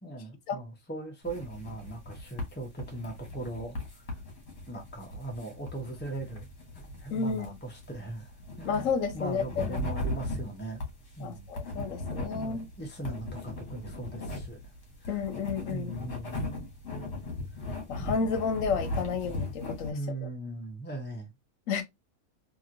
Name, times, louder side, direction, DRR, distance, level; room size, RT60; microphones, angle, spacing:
voice 1, 0.0-3.8 4.7-6.5 6.7-8.9 9.1-10.8 11.2-11.5 12.3-14.6 15.0-15.1 15.7-16.6 18.0-18.2 19.9-21.3, right 2 dB, 10° left, 0.6 m, -39 dB
sound 1, 1.2-19.9, left 1 dB, 60° left, 1.3 m, -38 dB
voice 2, 7.1-7.5 8.6-9.8 11.2-12.7 15.1-16.0 17.9-20.0 21.7-21.8, left 5 dB, 80° left, 1.0 m, -31 dB
3.0 x 2.7 x 2.5 m
omnidirectional pair, 1.3 m